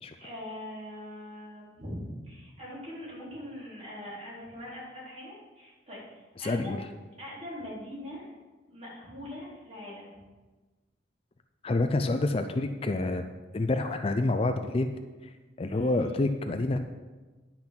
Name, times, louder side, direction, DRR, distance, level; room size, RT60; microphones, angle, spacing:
voice 1, 0.2-6.8 7.2-8.3 8.7-10.1 15.7-16.0, left 1 dB, 35° right, -7 dB, 3.8 m, -42 dB
voice 2, 6.4-6.8 11.6-13.2 13.5-14.9 15.6-16.8, left 2 dB, 30° left, 7 dB, 0.4 m, -27 dB
10.5 x 5.9 x 6.0 m, 1.3 s
head